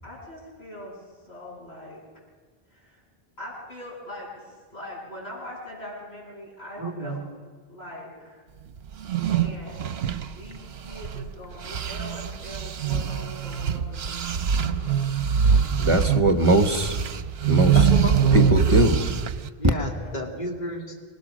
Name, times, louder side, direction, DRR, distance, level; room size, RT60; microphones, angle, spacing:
voice 1, 0.0-2.0 2.7-3.0 3.4-7.2 7.7-8.4 9.2-9.9 10.3-15.0 20.0-20.3, equal, 80° left, -7 dB, 8.5 m, -42 dB
voice 2, 6.8-7.2 17.7-18.9 19.6-20.9, equal, 45° left, 0 dB, 2.6 m, -32 dB
sound 1, 8.9-11.3 11.6-19.5, right 7 dB, 75° right, 1.0 m, -24 dB
voice 3, 15.8-17.0 17.4-17.8 18.3-19.1, right 1 dB, 30° right, 6 dB, 1.4 m, -20 dB
26.0 x 20.0 x 6.3 m, 1.5 s
omnidirectional pair, 1.1 m